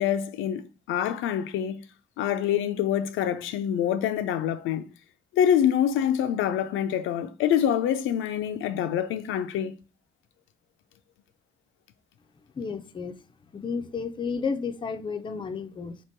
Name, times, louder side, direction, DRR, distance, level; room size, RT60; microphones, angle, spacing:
voice 1, 0.0-1.8 2.2-4.9 5.3-9.7, left 9 dB, 85° left, 0.4 m, -26 dB
voice 2, 12.5-13.1 13.5-16.0, left 5 dB, 25° left, 0.4 m, -32 dB
2.9 x 2.9 x 4.4 m
cardioid pair, 90°, 20 cm